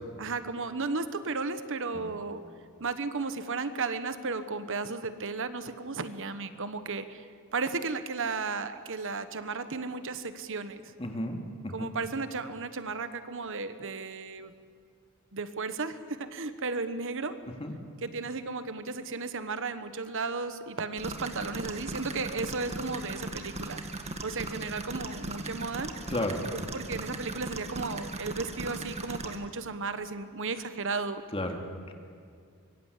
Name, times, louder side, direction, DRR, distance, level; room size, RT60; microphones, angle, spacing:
voice 1, 0.2-2.4 2.8-10.9 11.7-14.5 15.3-17.4 18.0-23.8 24.2-25.9 26.5-31.2, right 4 dB, 60° right, 11 dB, 1.3 m, -34 dB
voice 2, 11.0-11.9 17.6-17.7 26.1-26.4 31.3-31.6, left 1 dB, 25° left, 3 dB, 2.5 m, -32 dB
sound 1, 21.0-29.4, right 2 dB, 30° right, 1.9 m, -38 dB
25.0 x 23.5 x 8.4 m, 2.2 s
head